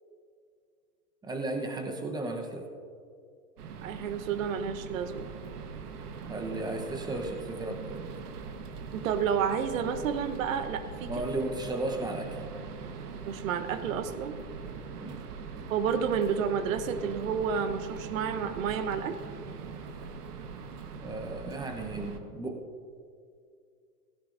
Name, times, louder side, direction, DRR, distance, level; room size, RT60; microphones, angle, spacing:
voice 1, 1.2-2.7 6.3-8.0 11.0-12.4 15.0-15.3 21.0-22.6, right 2 dB, 10° right, 4 dB, 0.9 m, -35 dB
sound 1, 3.6-22.2, right 5 dB, 75° right, 1.3 m, -41 dB
voice 2, 3.8-5.2 8.9-11.1 13.3-14.4 15.7-19.1, right 7 dB, 55° right, 10 dB, 1.0 m, -30 dB
16.5 x 16.0 x 2.6 m, 2.3 s
hypercardioid pair, 125°, 47 cm